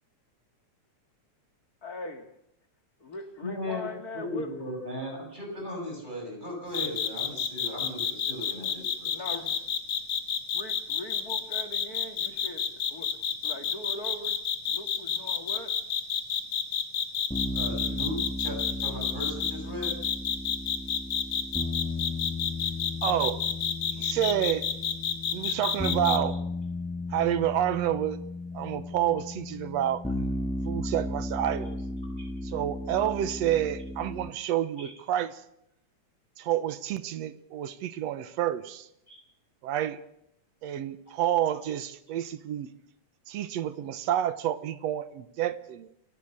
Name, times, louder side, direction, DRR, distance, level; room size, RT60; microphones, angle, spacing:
voice 1, 1.8-2.3 3.0-4.5 9.1-9.6 10.5-13.1 13.4-14.4 14.7-15.7, left 1 dB, 35° left, 6 dB, 2.1 m, -40 dB
voice 2, 3.4-9.5 17.5-19.9 34.8-34.9 39.1-39.2, left 1 dB, 15° right, 0 dB, 7.4 m, -37 dB
sound 1, 6.7-19.5 19.8-26.2, left 8 dB, 60° left, 2.6 m, -29 dB
sound 2, 17.3-34.3, left 2 dB, 5° left, 0.9 m, -35 dB
voice 3, 23.0-23.4 23.9-24.7 25.3-26.4 27.1-28.2 28.5-30.0 30.7-31.8 32.4-35.4 36.4-38.9 39.6-40.0 40.6-42.7 43.3-45.9, right 11 dB, 70° right, 14 dB, 2.1 m, -29 dB
28.5 x 16.0 x 6.8 m, 0.77 s
omnidirectional pair, 3.3 m